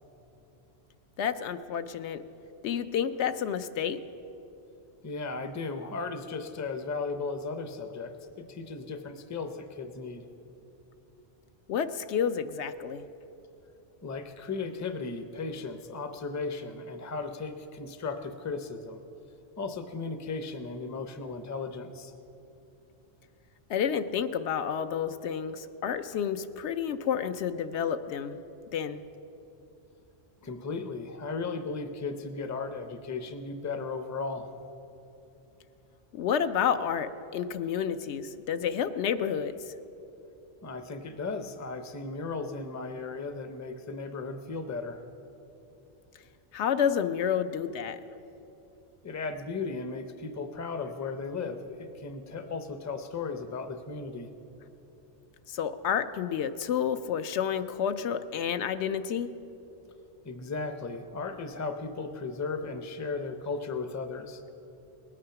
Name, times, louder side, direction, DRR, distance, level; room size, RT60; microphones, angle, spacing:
voice 1, 1.2-2.2 2.6-4.0 11.7-13.0 23.7-28.4 28.7-29.0 36.1-39.5 46.5-48.0 55.5-59.3, left 8 dB, 75° left, 10 dB, 0.9 m, -30 dB
voice 2, 5.0-10.3 14.0-19.0 19.6-22.1 30.4-34.5 40.6-45.0 49.0-54.3 60.2-64.4, left 4 dB, 20° left, 8 dB, 0.5 m, -36 dB
19.5 x 8.6 x 5.8 m, 3.0 s
omnidirectional pair, 1.2 m